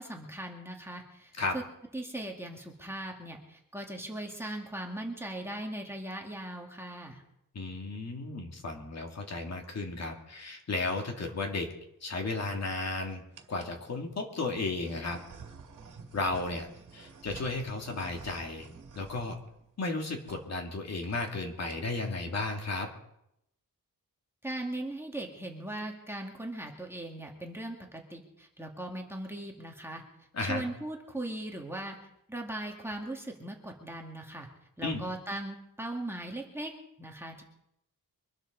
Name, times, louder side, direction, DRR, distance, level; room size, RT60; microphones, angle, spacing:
voice 1, 0.0-1.6 1.9-7.2 24.4-30.0 30.4-32.0 32.3-34.5 34.8-36.7 37.0-37.4, right 1 dB, 5° right, 0 dB, 2.0 m, -39 dB
voice 2, 7.5-11.7 12.0-13.2 13.5-15.2 16.1-16.7 16.9-18.7 19.0-19.4 19.8-22.9 30.3-30.6 34.8-35.0, left 3 dB, 50° left, 2 dB, 2.6 m, -34 dB
sound 1, 11.2-11.6 12.3-12.9 13.3-13.8 14.5-20.0 20.2-20.4 20.7-20.8 21.0-21.3 21.6-22.1, right 5 dB, 60° right, 2.2 m, -50 dB
24.0 x 12.0 x 4.0 m, 0.80 s
wide cardioid pair, 155°, 34 cm